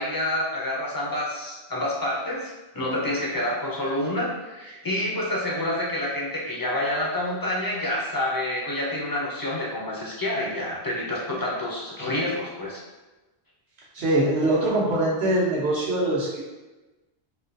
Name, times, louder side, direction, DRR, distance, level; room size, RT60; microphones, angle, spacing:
voice 1, 0.0-12.8, left 1 dB, 30° left, -4 dB, 0.4 m, -28 dB
voice 2, 13.9-16.4, right 1 dB, 75° right, -6 dB, 1.2 m, -23 dB
4.2 x 2.2 x 2.6 m, 1.1 s
omnidirectional pair, 1.1 m